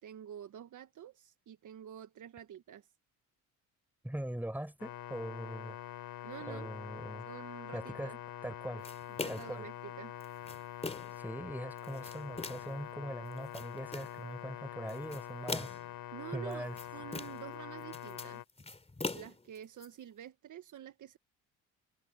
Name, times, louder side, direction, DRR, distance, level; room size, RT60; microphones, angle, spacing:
voice 1, 0.0-2.9 6.2-6.7 7.3-8.2 8.7-8.8 9.2-10.1 16.1-18.4 19.1-21.2, right 10 dB, 55° right, 1.7 m, -48 dB
voice 2, 4.0-5.8 6.5-7.3 7.7-8.1 8.4-8.9 9.3-9.7 11.2-15.8 16.3-16.8, right 1 dB, 5° right, 5.8 m, -41 dB
sound 1, 4.8-18.4, left 12 dB, 65° left, 3.8 m, -45 dB
sound 2, 8.8-9.6 10.2-11.2 11.8-12.8 13.3-14.2 14.9-15.9 16.5-17.5 17.8-19.9, left 3 dB, 15° left, 3.2 m, -42 dB
open air
supercardioid pair, 70°, 36 cm